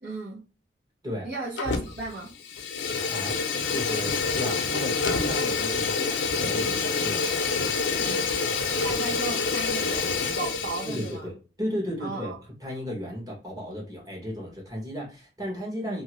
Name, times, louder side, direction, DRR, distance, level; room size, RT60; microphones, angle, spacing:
voice 1, 0.0-0.4 1.2-2.3 8.0-8.3 8.8-11.3 12.0-12.4 15.8-16.0, right 3 dB, 70° right, 1.0 m, -35 dB
Fire, 1.6-2.1 2.4-11.1, left 4 dB, 85° left, 0.6 m, -27 dB
voice 2, 3.7-7.3 10.8-11.3 11.6-12.3 12.6-16.0, equal, 20° right, 1.1 m, -34 dB
2.7 x 2.5 x 2.9 m
head